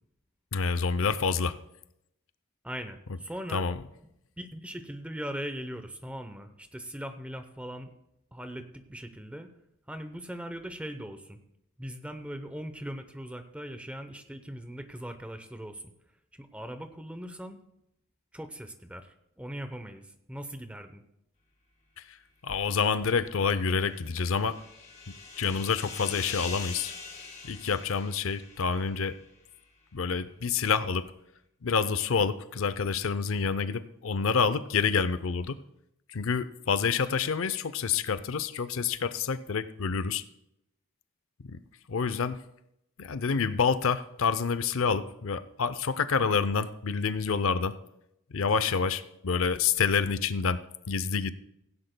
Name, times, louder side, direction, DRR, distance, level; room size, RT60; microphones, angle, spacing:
voice 1, 0.5-1.6 3.5-3.8 22.0-22.2 22.4-24.6 25.4-26.9 27.5-29.1 29.9-31.1 31.6-35.6 36.1-40.2 41.5-41.6 41.9-42.4 43.0-47.7 48.3-50.6 50.9-51.3, left 5 dB, 70° left, 13 dB, 0.5 m, -28 dB
voice 2, 2.6-3.7 4.4-7.9 8.3-9.5 9.9-11.4 11.8-15.9 16.3-17.6 18.3-21.0, equal, 5° right, 8 dB, 0.7 m, -40 dB
sound 1, 23.5-29.1, left 5 dB, 30° left, 2.6 m, -43 dB
16.5 x 16.0 x 2.2 m, 0.82 s
head